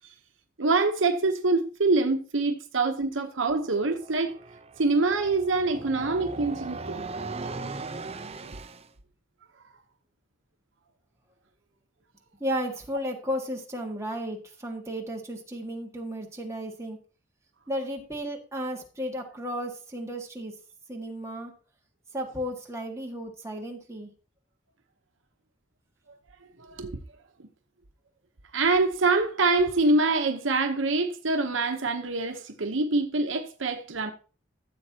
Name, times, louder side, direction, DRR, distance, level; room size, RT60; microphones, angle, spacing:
voice 1, 0.6-4.4 4.8-7.0 8.4-8.5 26.6-27.0 27.4-27.5 28.5-34.1, right 3 dB, 75° right, 1.0 m, -25 dB
sound 1, 3.4-8.9, right 3 dB, 30° right, 0.7 m, -39 dB
voice 2, 12.4-17.0 17.7-20.5 20.9-21.5 22.1-24.1, equal, 15° right, 1.8 m, -34 dB
14.5 x 7.8 x 2.9 m
head